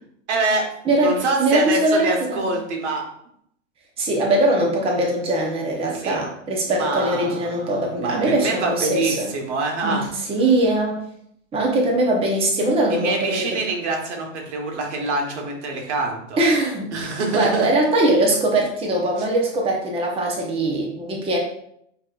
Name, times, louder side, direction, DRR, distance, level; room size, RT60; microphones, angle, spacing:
voice 1, 0.3-0.7 1.0-3.0 5.9-6.2 6.7-10.0 12.9-16.4 16.9-17.7, right 3 dB, 65° right, 1 dB, 1.4 m, -25 dB
voice 2, 0.9-2.4 4.0-9.3 9.8-11.0 11.5-13.6 16.4-16.9 17.3-21.4, right 1 dB, 15° right, -1 dB, 0.8 m, -21 dB
7.3 x 3.0 x 2.4 m, 0.71 s
hypercardioid pair, 125°, 37 cm